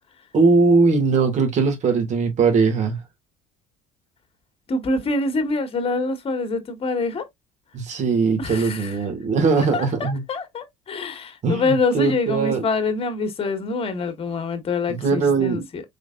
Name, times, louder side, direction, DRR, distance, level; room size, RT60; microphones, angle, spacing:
voice 1, 0.3-3.0 7.7-10.2 11.4-12.7 14.9-15.7, right 4 dB, 50° right, 2.2 m, -20 dB
voice 2, 4.7-7.3 8.4-9.0 9.7-15.8, left 3 dB, 35° left, 1.7 m, -25 dB
4.7 x 3.8 x 2.5 m
hypercardioid pair, 70°, 16 cm